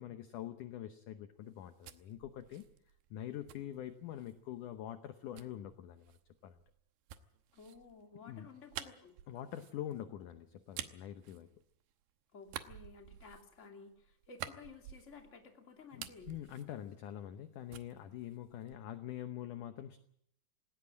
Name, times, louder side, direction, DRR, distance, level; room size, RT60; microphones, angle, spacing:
voice 1, 0.0-2.7 3.1-6.6 8.3-8.5 9.3-11.5 15.9-20.0, left 11 dB, 70° left, 9 dB, 2.0 m, -45 dB
sound 1, 1.4-4.5 5.4-12.0 12.4-15.5 15.8-17.4 17.7-19.0, right 12 dB, 75° right, 2.7 m, -50 dB
voice 2, 7.5-9.1 12.3-16.3, left 4 dB, 20° left, 4 dB, 2.2 m, -54 dB
18.5 x 18.5 x 8.7 m, 0.71 s
omnidirectional pair, 4.6 m